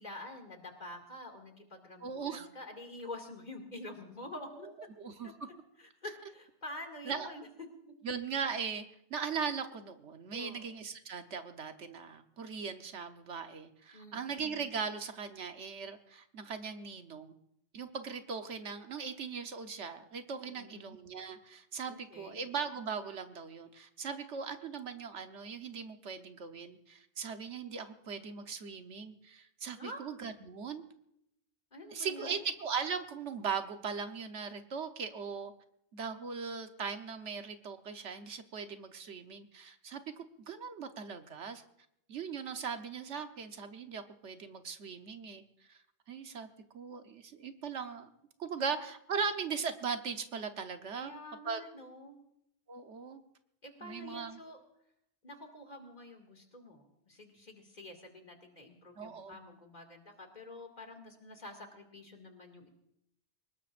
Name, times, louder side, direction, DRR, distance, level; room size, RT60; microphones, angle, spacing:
voice 1, 0.0-4.7 5.2-5.3 5.8-7.5 7.9-8.0 10.3-10.7 13.9-14.3 20.4-20.8 21.9-22.4 29.8-30.0 31.7-32.4 51.0-52.2 53.6-54.6 55.2-62.7, left 1 dB, 40° left, 3 dB, 2.4 m, -47 dB
voice 2, 2.0-2.5 5.0-5.4 7.0-7.3 8.0-8.8 9.1-17.3 17.7-30.8 31.9-35.5 35.9-41.6 42.1-45.4 45.7-45.8 46.1-46.5 46.7-48.1 48.4-51.1 51.4-51.6 52.7-53.2 53.8-54.4 59.0-59.4, right 6 dB, 80° right, 7 dB, 1.3 m, -39 dB
23.5 x 20.0 x 2.5 m, 0.78 s
omnidirectional pair, 1.2 m